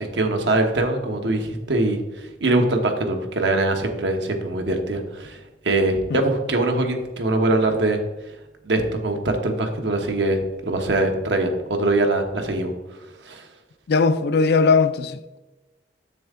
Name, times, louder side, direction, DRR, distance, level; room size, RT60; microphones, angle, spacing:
voice 1, 0.0-5.4 5.6-8.0 8.6-12.7 13.2-13.5, right 2 dB, 80° right, 1.0 m, -22 dB
voice 2, 13.9-15.4, left 4 dB, 65° left, 0.4 m, -19 dB
7.2 x 6.4 x 3.6 m
head